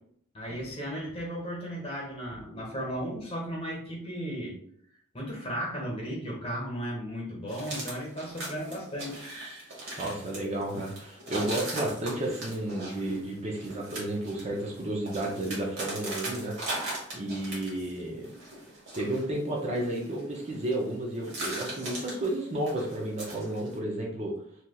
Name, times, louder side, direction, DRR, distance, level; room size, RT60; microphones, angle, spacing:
voice 1, 0.3-4.6 5.1-9.3, equal, 30° left, -3 dB, 1.1 m, -35 dB
sound 1, 7.5-18.0 18.2-20.9 21.2-23.8, right 1 dB, 60° right, 1.3 m, -40 dB
voice 2, 10.0-18.3 18.9-24.4, right 1 dB, 30° right, -2 dB, 0.6 m, -32 dB
3.3 x 2.8 x 2.3 m, 0.65 s
head